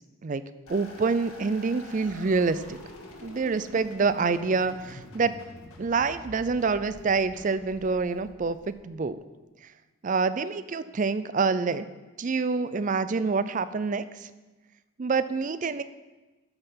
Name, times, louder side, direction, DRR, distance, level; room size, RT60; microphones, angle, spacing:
sound 1, 0.7-9.1, left 1 dB, 85° left, 1.9 m, -47 dB
voice 1, 0.7-2.8 3.2-5.3 5.8-9.2 10.0-11.9 12.2-14.3 15.0-15.8, right 4 dB, 35° right, 14 dB, 0.4 m, -27 dB
13.5 x 5.6 x 5.7 m, 1.2 s
head